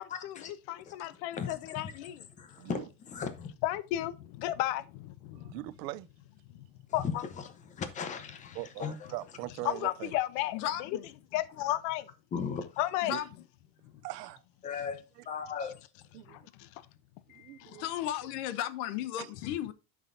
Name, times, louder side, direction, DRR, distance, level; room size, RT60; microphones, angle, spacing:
voice 1, 0.0-2.3 3.6-5.5 6.9-7.3 9.6-10.9 11.3-12.0 12.8-13.1 16.3-16.7 17.3-17.8, left 14 dB, 50° left, 0.8 m, -34 dB
voice 2, 1.4-1.9 2.4-3.5 7.0-7.2 7.8-9.1 12.3-12.6 14.6-15.0 15.3-15.7, left 6 dB, 15° left, 0.8 m, -36 dB
voice 3, 5.5-6.1 8.5-10.1 13.1-13.2 14.0-14.4 16.1-16.4 17.4-17.8 19.2-19.3, right 19 dB, 90° right, 0.7 m, -41 dB
voice 4, 10.5-11.0 13.0-13.3 17.8-19.7, left 12 dB, 65° left, 1.1 m, -35 dB
11.5 x 6.2 x 2.6 m
cardioid pair, 180°, 48 cm